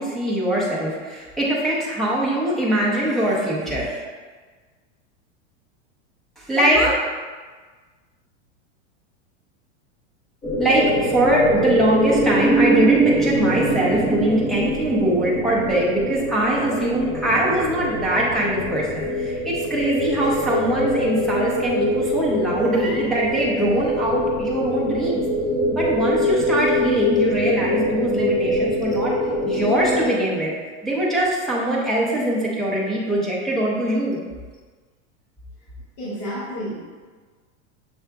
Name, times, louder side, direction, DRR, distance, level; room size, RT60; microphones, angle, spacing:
voice 1, 0.0-4.0 6.4-7.0 10.6-25.2 25.7-29.2 29.5-30.5 30.8-34.2, right 1 dB, ahead, -6 dB, 0.3 m, -22 dB
sound 1, 10.4-30.1, equal, 15° left, 0.9 m, -23 dB
voice 2, 36.0-36.9, equal, 50° left, -11 dB, 1.5 m, -30 dB
6.6 x 3.5 x 2.3 m, 1.4 s
supercardioid pair, 155°, 37 cm